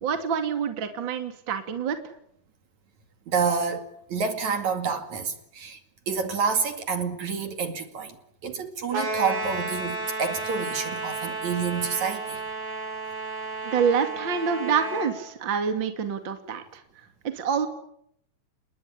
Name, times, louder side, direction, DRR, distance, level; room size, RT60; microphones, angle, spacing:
voice 1, 0.0-2.0 13.6-16.8 17.2-17.7, right 6 dB, 35° right, 2.8 m, -27 dB
voice 2, 3.3-5.8 6.1-8.2 8.4-12.4, right 5 dB, 55° right, 3.4 m, -28 dB
sound 1, 8.9-15.1, right 2 dB, 90° right, 9.1 m, -32 dB
29.0 x 21.0 x 9.8 m
omnidirectional pair, 4.2 m